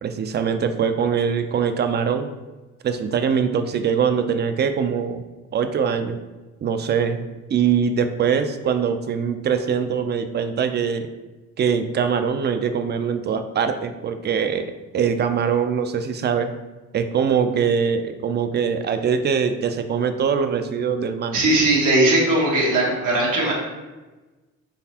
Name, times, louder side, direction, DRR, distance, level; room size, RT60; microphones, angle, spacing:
voice 1, 0.0-2.3 2.8-5.2 5.5-6.2 6.6-11.1 11.6-14.7 14.9-16.5 16.9-21.3, right 7 dB, 35° right, 9 dB, 0.4 m, -22 dB
voice 2, 21.3-23.5, right 2 dB, 90° right, -3 dB, 1.3 m, -19 dB
3.9 x 3.3 x 2.8 m, 1.2 s
cardioid pair, 90°, 30 cm